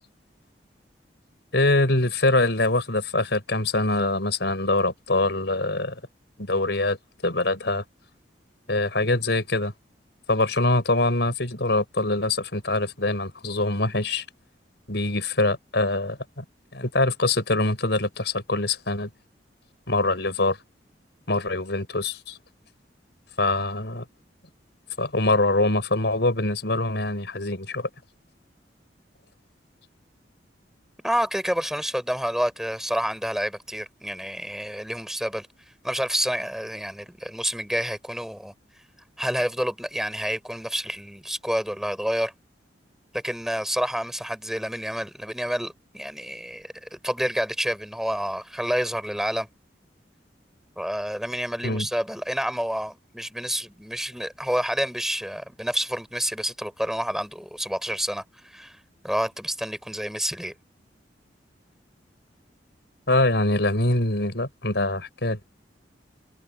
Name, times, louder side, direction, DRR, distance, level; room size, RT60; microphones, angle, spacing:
voice 1, 1.5-6.0 6.4-7.0 7.2-7.8 8.7-9.7 10.3-14.3 14.9-16.4 16.7-19.1 19.9-20.6 21.3-22.4 23.4-24.0 25.0-27.9 51.6-51.9 63.1-65.4, left 2 dB, 70° left, 5.8 m, -24 dB
voice 2, 31.0-35.5 35.8-38.5 39.2-42.3 43.1-49.5 50.8-58.8 59.0-60.5, equal, ahead, 7.7 m, -28 dB
head